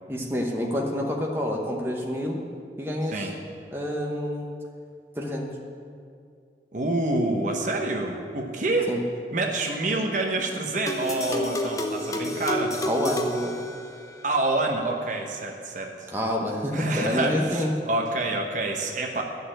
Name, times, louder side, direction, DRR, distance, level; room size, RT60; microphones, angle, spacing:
voice 1, 0.1-2.4 2.8-3.3 3.7-4.5 5.1-5.5 8.9-9.0 12.9-13.6 16.1-17.7, left 1 dB, 15° right, -1 dB, 1.1 m, -28 dB
voice 2, 6.7-8.9 9.3-12.8 14.2-16.1 16.7-19.2, right 2 dB, 45° right, 2 dB, 1.1 m, -27 dB
sound 1, 10.9-14.3, left 1 dB, 20° left, 0.9 m, -30 dB
12.0 x 6.7 x 8.9 m, 2.3 s
head